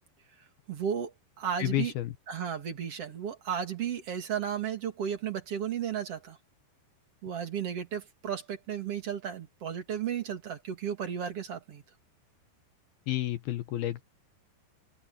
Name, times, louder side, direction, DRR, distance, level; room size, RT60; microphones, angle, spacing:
voice 1, 0.7-1.9 2.3-6.4 7.2-11.8, right 8 dB, 40° right, 2.7 m, -34 dB
voice 2, 1.6-2.1 13.1-14.0, left 14 dB, 70° left, 2.6 m, -30 dB
open air
omnidirectional pair, 5.0 m